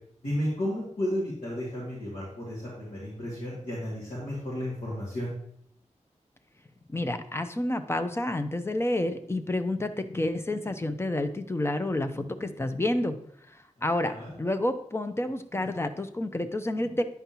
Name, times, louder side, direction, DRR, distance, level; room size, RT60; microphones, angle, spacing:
voice 1, 0.2-5.3 14.0-14.3, left 1 dB, 85° left, -9 dB, 2.5 m, -33 dB
voice 2, 6.9-13.2 13.5-17.0, left 1 dB, 20° left, 9 dB, 0.6 m, -29 dB
9.3 x 5.2 x 3.0 m, 0.68 s
wide cardioid pair, 85°, 13 cm